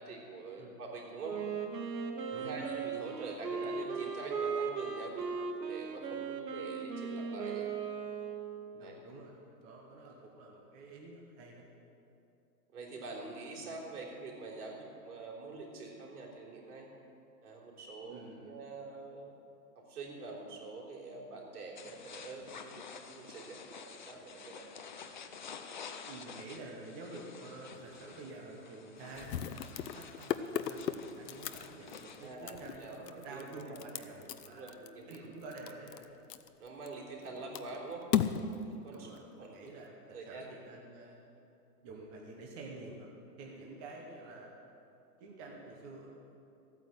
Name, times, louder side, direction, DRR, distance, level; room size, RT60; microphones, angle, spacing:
voice 1, 0.0-1.4 2.4-5.3 5.7-7.7 8.8-8.9 12.7-16.9 17.4-19.3 19.8-24.7 32.2-33.8 34.5-35.2 36.6-38.0 38.6-39.1 39.4-39.5 40.1-40.5, right 3 dB, 65° right, -1 dB, 3.8 m, -45 dB
Wind instrument woodwind instrument, 1.2-9.0, right 5 dB, 90° right, 1.8 m, -38 dB
voice 2, 2.3-2.7 8.7-9.3 9.6-11.7 13.6-13.8 18.1-18.7 25.8-34.8 35.1-36.1 38.9-41.3 41.8-44.5 45.2-46.4, right 2 dB, 15° right, -1 dB, 0.7 m, -49 dB
sound 1, 21.8-32.3, left 6 dB, 30° left, 0.4 m, -50 dB
sound 2, 27.7-27.9 28.2-28.3 29.1-37.3 37.5-39.7, left 9 dB, 75° left, 0.9 m, -37 dB
15.0 x 9.2 x 7.6 m, 2.6 s
hypercardioid pair, 165°, 48 cm